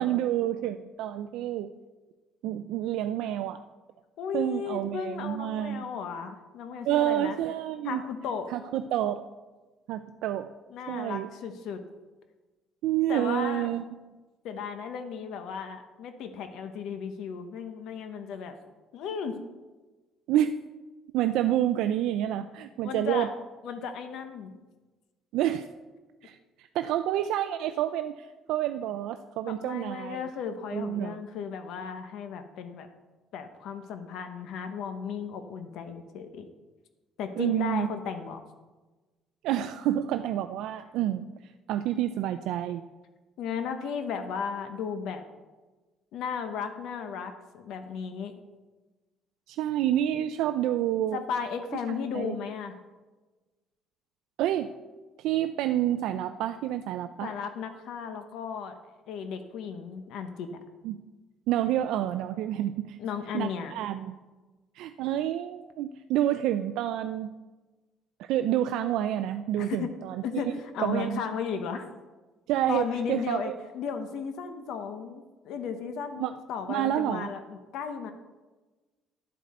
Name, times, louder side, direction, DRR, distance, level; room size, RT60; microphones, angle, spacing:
voice 1, 0.0-1.7 2.4-3.6 4.3-5.9 6.9-8.0 8.5-9.2 9.9-10.5 10.9-11.3 12.8-13.8 20.3-20.5 21.1-23.3 25.3-25.7 26.2-30.3 30.7-31.2 37.4-37.9 39.4-41.3 41.7-42.8 49.5-51.2 51.9-52.4 54.4-54.7 55.2-57.3 60.8-61.0 61.5-63.0 63.3-64.1 64.8-67.3 68.2-70.2 70.8-71.2 72.5-73.6 76.2-76.4 76.7-77.3, right 12 dB, 75° right, 8 dB, 0.4 m, -28 dB
voice 2, 4.2-7.4 7.8-8.5 10.7-11.8 13.1-13.7 14.4-18.6 18.9-19.4 22.8-23.3 23.6-24.6 29.5-32.9 33.3-36.5 37.2-38.4 43.4-45.2 46.1-48.3 51.1-52.8 57.2-58.8 59.1-60.6 63.0-63.7 69.6-69.9 70.2-71.9 72.7-78.1, left 6 dB, 65° left, 8 dB, 0.8 m, -35 dB
11.5 x 7.6 x 4.2 m, 1.2 s
cardioid pair, 170°, 0 cm